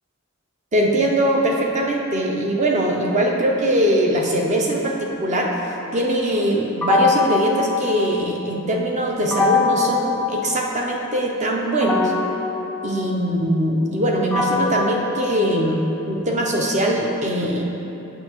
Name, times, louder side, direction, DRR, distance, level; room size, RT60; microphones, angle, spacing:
voice 1, 0.7-12.1 12.8-17.6, right 1 dB, 35° right, 0 dB, 0.6 m, -21 dB
sound 1, 6.8-8.6 9.3-11.1 11.8-16.1, left 4 dB, 5° left, 0.3 m, -24 dB
7.7 x 5.4 x 3.0 m, 2.9 s
head